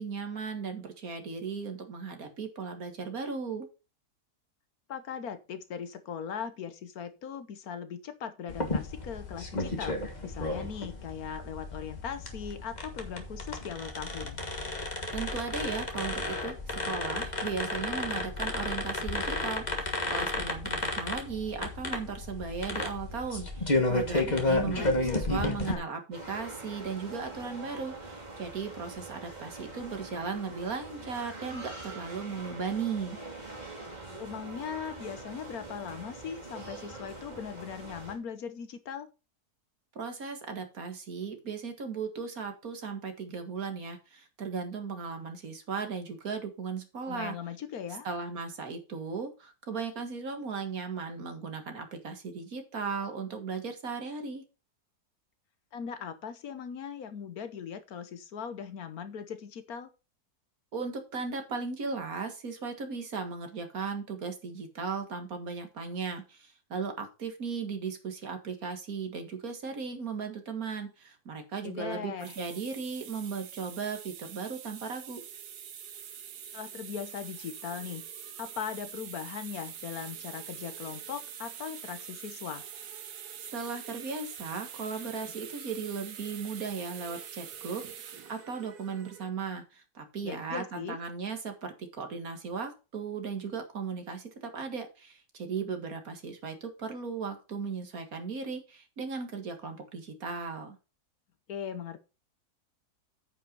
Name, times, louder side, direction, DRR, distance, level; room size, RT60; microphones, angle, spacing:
voice 1, 0.0-3.7 15.1-33.2 40.0-47.4 48.0-54.4 60.7-75.2 83.5-100.8, right 5 dB, 60° right, 6 dB, 2.1 m, -37 dB
voice 2, 4.9-10.0 10.2-14.4 24.6-25.9 34.2-39.1 47.1-48.1 55.7-59.9 71.6-72.4 76.5-78.0 78.4-82.7 90.2-91.0 101.5-102.0, left 7 dB, 65° left, 11 dB, 1.4 m, -39 dB
sound 1, 8.5-25.7, left 2 dB, 25° left, 1.7 m, -32 dB
sound 2, 26.1-38.1, right 2 dB, 25° right, 3.2 m, -44 dB
sound 3, 72.1-89.3, right 9 dB, 80° right, 1.5 m, -45 dB
9.1 x 5.6 x 5.3 m, 0.31 s
omnidirectional pair, 1.7 m